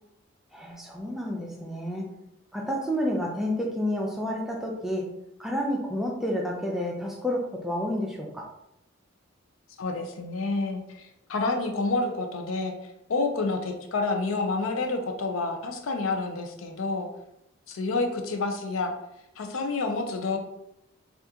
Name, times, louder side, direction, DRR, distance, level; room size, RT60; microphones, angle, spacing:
voice 1, 0.5-2.1 2.5-5.1 5.4-8.5, equal, ahead, -1 dB, 0.4 m, -30 dB
voice 2, 9.8-12.8 13.1-17.1 17.7-18.9 19.4-20.4, left 3 dB, 80° left, 4 dB, 0.5 m, -28 dB
2.8 x 2.4 x 3.5 m, 0.84 s
head